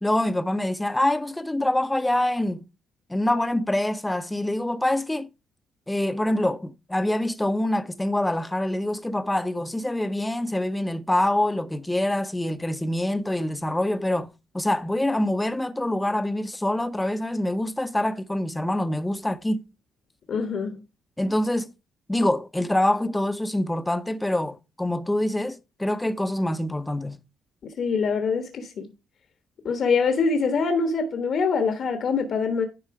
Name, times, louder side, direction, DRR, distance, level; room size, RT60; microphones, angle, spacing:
voice 1, 0.0-2.6 3.1-5.3 5.9-14.3 14.5-19.6 21.2-21.7 22.1-27.2, left 1 dB, 10° left, 0.8 m, -25 dB
voice 2, 20.3-20.8 27.6-28.9 29.6-32.7, left 5 dB, 60° left, 1.2 m, -24 dB
10.5 x 4.3 x 4.8 m
cardioid pair, 90°, 0 cm